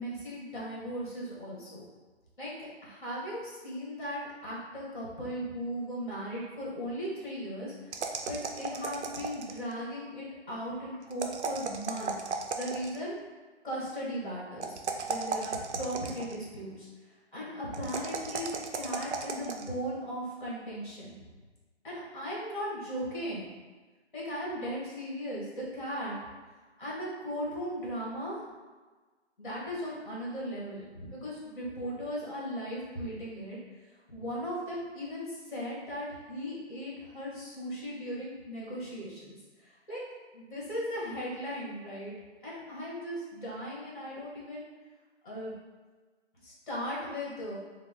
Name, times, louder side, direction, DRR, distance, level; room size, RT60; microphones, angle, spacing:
voice 1, 0.0-1.8 2.4-12.3 12.5-13.2 13.6-18.5 18.7-21.2 21.8-23.4 24.1-26.2 26.8-28.5 29.4-33.6 34.1-40.0 40.3-42.1 42.4-44.6 45.2-45.5 46.4-47.6, equal, 45° left, -6 dB, 1.4 m, -37 dB
sound 1, 7.9-9.7 11.1-13.0 14.6-16.4 17.7-19.7, right 5 dB, 75° right, 0.5 m, -35 dB
3.0 x 2.0 x 3.6 m, 1.3 s
hypercardioid pair, 175°, 35 cm